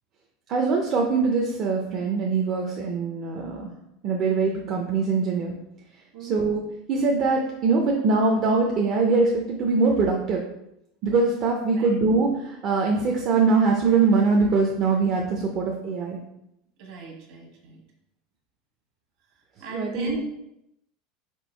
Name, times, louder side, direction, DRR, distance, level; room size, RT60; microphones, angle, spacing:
voice 1, 0.5-3.7 4.0-5.6 6.2-6.6 6.9-10.4 11.0-16.2 19.7-20.1, right 4 dB, 35° right, -1 dB, 0.5 m, -22 dB
voice 2, 6.1-6.4 11.7-12.0 16.8-17.8 19.3-20.3, right 4 dB, 50° right, 0 dB, 1.2 m, -37 dB
4.4 x 2.6 x 4.3 m, 0.81 s
supercardioid pair, 175°, 0 cm